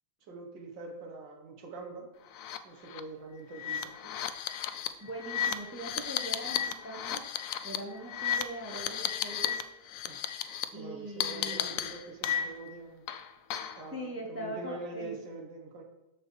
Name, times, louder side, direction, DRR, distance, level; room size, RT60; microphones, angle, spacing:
voice 1, 0.2-2.1 2.6-4.1 10.1-10.2 10.7-13.0 13.8-15.8, right 3 dB, 80° right, 2 dB, 1.9 m, -44 dB
sound 1, 2.4-2.6 2.9-3.0 3.5-9.6 9.9-10.6 11.2-12.7 13.1-13.8, left 9 dB, 90° left, 0.7 m, -34 dB
voice 2, 5.0-7.2 7.6-9.6 10.7-11.8 13.9-15.2, right 1 dB, 10° right, 0 dB, 0.7 m, -41 dB
13.5 x 4.5 x 3.2 m, 0.98 s
omnidirectional pair, 2.0 m